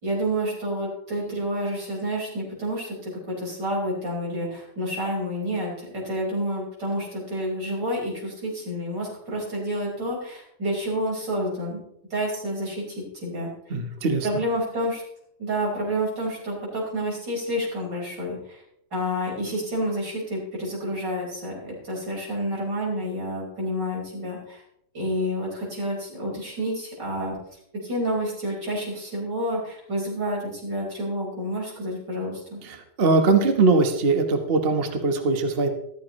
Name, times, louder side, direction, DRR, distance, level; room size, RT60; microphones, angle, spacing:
voice 1, 0.0-11.8 12.1-13.5 14.2-15.0 15.4-18.6 18.9-24.6 24.9-27.4 27.8-32.6, equal, 65° right, -4 dB, 5.9 m, -29 dB
voice 2, 13.7-14.3 32.6-35.7, right 3 dB, 35° right, 5 dB, 1.4 m, -21 dB
14.0 x 13.5 x 3.2 m, 0.73 s
omnidirectional pair, 2.0 m